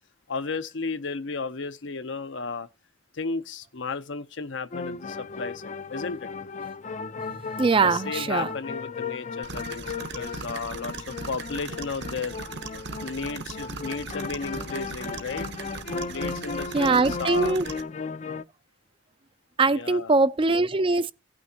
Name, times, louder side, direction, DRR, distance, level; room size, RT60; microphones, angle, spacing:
voice 1, 0.3-2.7 3.1-6.3 7.8-12.4 13.0-15.5 16.0-17.6 19.7-20.1, left 4 dB, 75° left, 0.8 m, -34 dB
sound 1, 4.7-18.4, left 4 dB, 40° left, 0.5 m, -36 dB
voice 2, 7.6-8.5 16.7-17.7 19.6-21.1, right 3 dB, 30° right, 0.5 m, -22 dB
sound 2, 9.4-17.8, right 3 dB, 60° right, 1.1 m, -38 dB
17.0 x 6.3 x 2.8 m
head